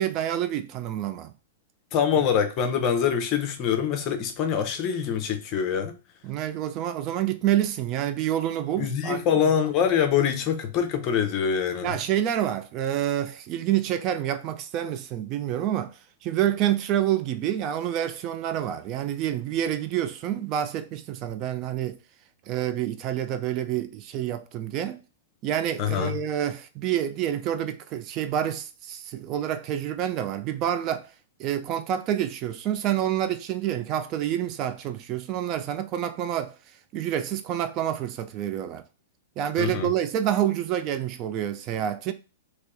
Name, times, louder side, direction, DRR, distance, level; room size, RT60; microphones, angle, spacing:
voice 1, 0.0-1.3 6.2-9.5 11.8-22.0 22.5-25.0 25.4-31.1 31.4-36.5 36.9-38.8 39.4-42.1, right 11 dB, 35° right, 0.4 m, -28 dB
voice 2, 1.9-6.0 8.8-12.0 25.8-26.2 39.6-39.9, left 8 dB, 35° left, 0.7 m, -24 dB
3.0 x 3.0 x 3.5 m
figure-of-eight pair, 105°, 0 cm